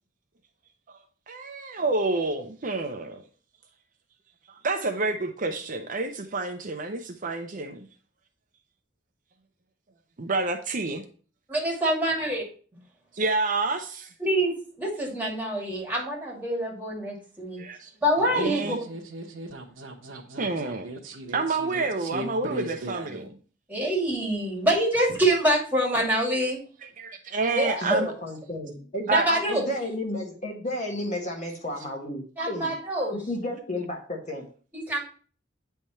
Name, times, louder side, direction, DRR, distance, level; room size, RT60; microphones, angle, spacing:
voice 1, 1.3-3.2 4.5-7.9 10.2-11.0 13.1-14.1 17.6-17.9 18.3-18.8 20.4-20.9 21.3-23.3 26.8-28.1 29.1-29.3 33.0-33.1, right 3 dB, 45° right, 5 dB, 0.6 m, -29 dB
voice 2, 11.5-12.4 14.2-14.5 14.8-17.6 18.0-18.8 23.7-26.6 27.5-28.0 29.1-29.7 32.4-33.2 34.7-35.0, right 1 dB, 10° right, -2 dB, 2.3 m, -25 dB
sound 1, 18.2-23.3, right 2 dB, 85° right, 1.0 m, -38 dB
voice 3, 27.8-32.7 33.1-34.5, left 1 dB, 40° left, 1 dB, 1.6 m, -32 dB
9.1 x 3.5 x 4.2 m, 0.40 s
head